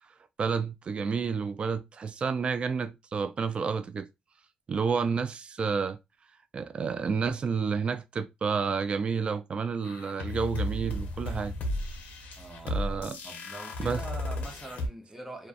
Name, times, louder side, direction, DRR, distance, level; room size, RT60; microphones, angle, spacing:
voice 1, 0.4-4.1 4.7-6.0 6.5-11.5 12.6-13.2 13.8-14.0, right 5 dB, 40° right, 0.3 m, -30 dB
sound 1, 9.8-14.9, left 1 dB, 80° left, 0.6 m, -34 dB
voice 2, 12.4-12.8 13.2-15.5, right 2 dB, 10° right, 0.8 m, -43 dB
2.5 x 2.3 x 2.4 m
cardioid pair, 95°, 3 cm